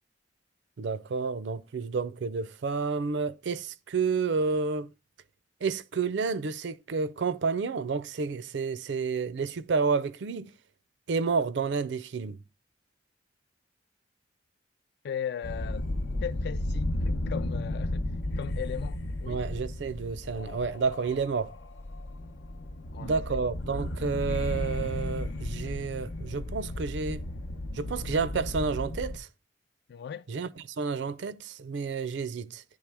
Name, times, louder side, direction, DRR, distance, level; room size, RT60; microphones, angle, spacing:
voice 1, 0.8-4.9 5.6-10.5 11.1-12.4 19.3-21.5 23.0-27.2 27.7-29.3 30.3-32.6, right 5 dB, 70° right, 0.4 m, -30 dB
voice 2, 15.0-15.9 16.2-18.0 18.4-19.4 22.9-23.4 29.9-30.2, left 8 dB, 60° left, 0.3 m, -37 dB
sound 1, 15.4-29.2, left 1 dB, 85° left, 0.7 m, -34 dB
9.6 x 3.2 x 3.3 m
head